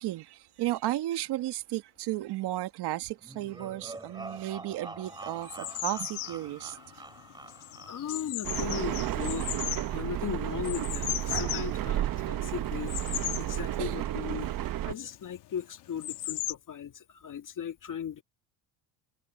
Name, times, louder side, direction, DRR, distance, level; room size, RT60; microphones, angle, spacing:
voice 1, 0.0-6.8 11.7-11.9 13.8-14.0, right 15 dB, 70° right, 1.6 m, -34 dB
sound 1, 3.2-8.3, right 2 dB, 10° right, 3.8 m, -46 dB
sound 2, 5.1-16.5, left 14 dB, 70° left, 1.7 m, -38 dB
voice 2, 7.9-9.5 9.9-18.2, left 8 dB, 50° left, 2.2 m, -37 dB
sound 3, 8.4-14.9, right 13 dB, 55° right, 0.9 m, -32 dB
cardioid pair, 105°, 41 cm